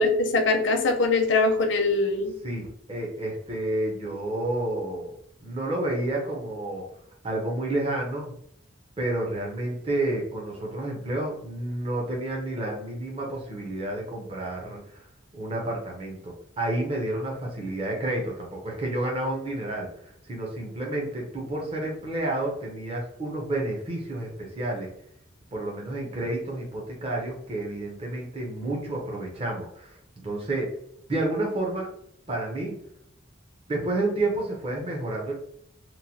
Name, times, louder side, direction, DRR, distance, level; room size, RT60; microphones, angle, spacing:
voice 1, 0.0-2.3, left 3 dB, 65° left, 3 dB, 0.5 m, -22 dB
voice 2, 2.4-5.1 5.4-6.8 7.2-8.3 9.0-15.0 15.3-24.9 25.5-30.7 31.1-31.9 32.3-32.8 33.7-35.3, right 1 dB, 30° right, -1 dB, 0.5 m, -30 dB
3.0 x 2.1 x 2.6 m, 0.69 s
head